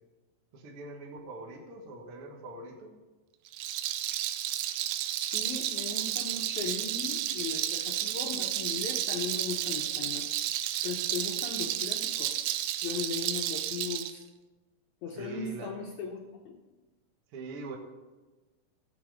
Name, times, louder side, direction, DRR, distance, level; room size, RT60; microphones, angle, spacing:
voice 1, 0.5-2.9 15.1-15.7 17.3-17.8, right 2 dB, 65° right, 0 dB, 1.4 m, -43 dB
Rattle, 3.5-14.1, right 12 dB, 90° right, 2.8 m, -32 dB
voice 2, 5.3-10.2 10.8-12.4 12.8-14.2 15.0-16.6, left 5 dB, 85° left, 1 dB, 1.6 m, -37 dB
15.0 x 7.3 x 4.9 m, 1.2 s
omnidirectional pair, 4.8 m